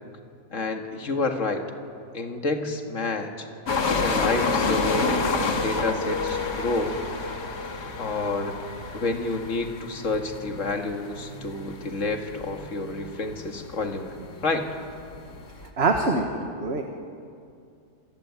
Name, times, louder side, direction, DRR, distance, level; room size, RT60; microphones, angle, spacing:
voice 1, 0.5-1.6 2.1-3.5 3.9-7.0 7.8-8.7 8.9-14.2 14.4-14.7, left 3 dB, 50° left, 5 dB, 2.2 m, -29 dB
sound 1, 3.7-15.7, left 3 dB, 75° left, 2.5 m, -30 dB
voice 2, 15.8-16.8, right 3 dB, 40° right, 4 dB, 1.7 m, -24 dB
27.0 x 16.0 x 9.4 m, 2.4 s
omnidirectional pair, 1.8 m